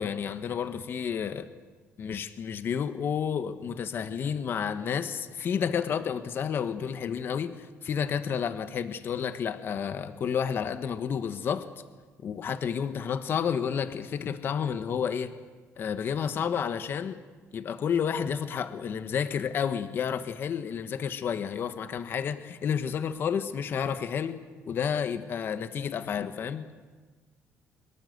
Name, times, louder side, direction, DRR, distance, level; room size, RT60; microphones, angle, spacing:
voice 1, 0.0-1.5 2.0-11.7 12.2-15.3 15.8-17.2 17.5-24.4 24.6-26.7, left 7 dB, 45° left, 10 dB, 1.2 m, -30 dB
24.0 x 22.5 x 8.0 m, 1.4 s
cardioid pair, 145°, 5 cm